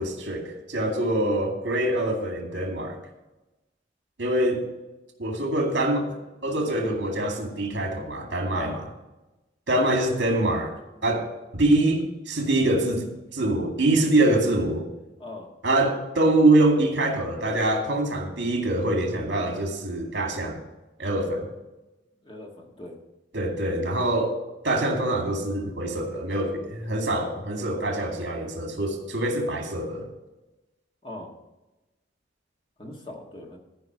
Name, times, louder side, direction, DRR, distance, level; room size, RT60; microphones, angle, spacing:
voice 1, 0.0-3.0 4.2-4.6 5.2-8.8 9.7-10.7 11.0-14.9 15.6-20.6 21.0-21.5 23.3-24.3 24.6-30.1, right 1 dB, 70° right, 2 dB, 2.3 m, -24 dB
voice 2, 22.2-23.0 31.0-31.3 32.8-33.6, left 2 dB, 30° left, 1 dB, 1.6 m, -39 dB
14.0 x 5.4 x 6.1 m, 1.0 s
head